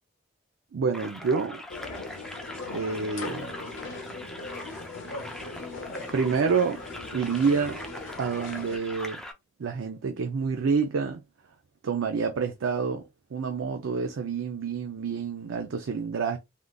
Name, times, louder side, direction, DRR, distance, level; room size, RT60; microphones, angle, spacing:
voice 1, 0.7-1.6 2.7-3.6 6.1-6.8 7.1-7.8 8.2-9.2 9.6-11.2 11.8-16.4, right 5 dB, 85° right, 0.4 m, -28 dB
sound 1, 0.9-9.3, left 1 dB, 5° left, 0.3 m, -42 dB
sound 2, 1.7-8.8, left 3 dB, 75° left, 0.7 m, -39 dB
3.6 x 2.4 x 2.3 m
head